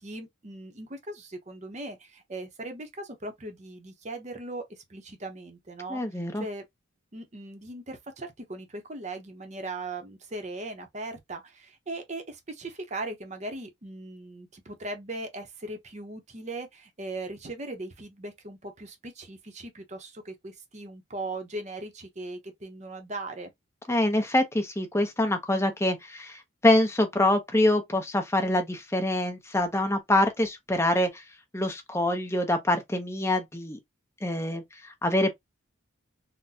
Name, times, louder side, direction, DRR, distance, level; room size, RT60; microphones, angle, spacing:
voice 1, 0.0-6.6 7.1-23.5, right 2 dB, 35° right, 0.7 m, -39 dB
voice 2, 5.9-6.4 23.9-31.2 31.5-33.8 34.2-35.3, left 1 dB, 15° left, 0.6 m, -25 dB
3.8 x 2.1 x 2.7 m
head